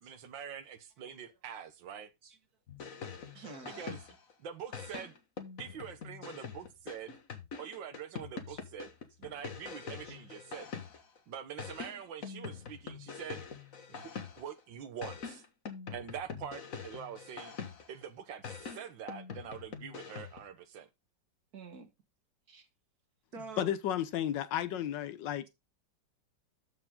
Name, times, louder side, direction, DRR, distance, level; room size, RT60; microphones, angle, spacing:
voice 1, 0.0-2.1 3.6-4.0 4.4-5.1 5.6-7.2 7.6-8.9 9.2-10.7 11.3-13.4 13.9-15.4 15.9-17.5 17.9-20.9, right 8 dB, 90° right, 1.8 m, -45 dB
sound 1, 2.7-4.3 4.7-11.2 11.6-14.6 15.0-18.0 18.4-20.5, left 6 dB, 50° left, 1.7 m, -44 dB
voice 2, 3.3-3.9 6.2-6.3 8.5-8.6 10.0-10.2 21.5-21.9 22.5-22.7 23.3-23.7, right 4 dB, 55° right, 2.1 m, -47 dB
voice 3, 23.6-25.4, left 10 dB, 75° left, 1.5 m, -33 dB
13.5 x 4.7 x 3.7 m
omnidirectional pair, 2.0 m